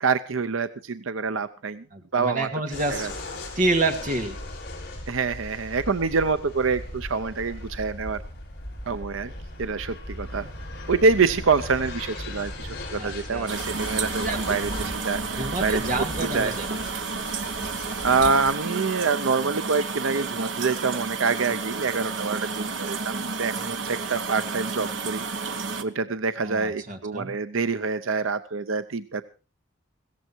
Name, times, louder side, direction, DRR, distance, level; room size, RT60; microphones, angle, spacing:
voice 1, 0.0-1.8 2.1-2.5 2.9-3.1 5.1-8.2 8.9-9.3 9.6-10.5 10.9-15.9 16.2-16.5 18.0-25.2 25.8-29.2, right 4 dB, 85° right, 12 dB, 0.7 m, -26 dB
voice 2, 1.9-3.1 3.5-4.4 12.9-13.5 14.2-14.6 15.4-16.7 26.4-27.4, right 2 dB, 40° right, 4 dB, 2.5 m, -28 dB
sound 1, 2.7-18.5, left 1 dB, 50° left, 5.2 m, -37 dB
sound 2, 13.5-25.8, right 4 dB, 70° right, 1.3 m, -31 dB
16.5 x 15.0 x 4.6 m, 0.36 s
head